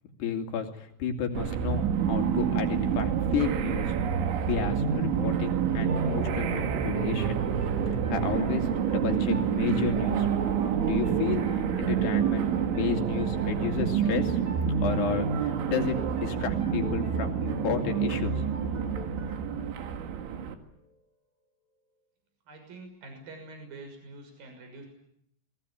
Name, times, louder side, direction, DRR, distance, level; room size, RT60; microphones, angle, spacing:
voice 1, 0.2-4.0 4.4-7.4 7.9-10.3 10.8-14.4 14.8-18.8, left 7 dB, 65° left, 4 dB, 4.4 m, -32 dB
sound 1, 1.3-20.5, right 7 dB, 90° right, 4.2 m, -28 dB
sound 2, 5.7-21.0, left 1 dB, 25° right, 6.7 m, -46 dB
voice 2, 22.5-24.9, right 2 dB, 50° right, 5 dB, 8.0 m, -46 dB
29.0 x 22.0 x 8.6 m, 0.74 s
omnidirectional pair, 5.3 m